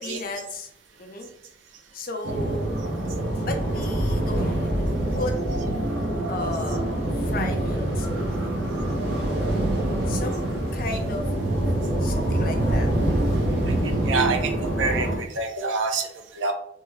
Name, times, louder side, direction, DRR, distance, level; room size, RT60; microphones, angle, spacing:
voice 1, 0.0-0.7 1.0-1.3 1.9-2.9 3.4-4.6 5.1-5.3 6.3-8.5 10.1-11.2 12.0-12.9, left 2 dB, 50° left, 4 dB, 0.6 m, -34 dB
sound 1, 2.2-15.2, right 1 dB, 60° right, 0.9 m, -25 dB
voice 2, 13.7-14.5 14.8-16.5, right 3 dB, 85° right, 4 dB, 0.6 m, -27 dB
3.1 x 2.1 x 3.5 m, 0.75 s
head